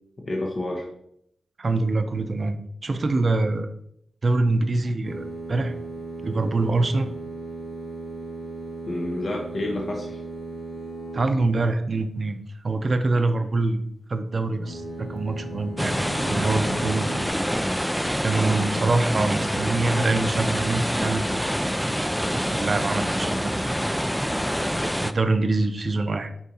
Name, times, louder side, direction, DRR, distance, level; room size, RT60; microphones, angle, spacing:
voice 1, 0.3-0.9 8.9-10.2 18.4-18.7, left 1 dB, 45° left, 0 dB, 1.1 m, -29 dB
voice 2, 1.6-3.7 4.2-5.7 6.2-7.1 11.1-12.4 12.6-13.8 14.1-17.1 18.2-21.4 21.8-23.7 25.0-26.3, right 3 dB, 45° right, 8 dB, 0.6 m, -25 dB
sound 1, 5.0-11.8 14.5-17.3, right 2 dB, 65° left, 1.2 m, -37 dB
sound 2, 15.8-25.1, equal, ahead, 0.3 m, -26 dB
8.3 x 5.0 x 2.8 m, 0.72 s
wide cardioid pair, 100°, 0 cm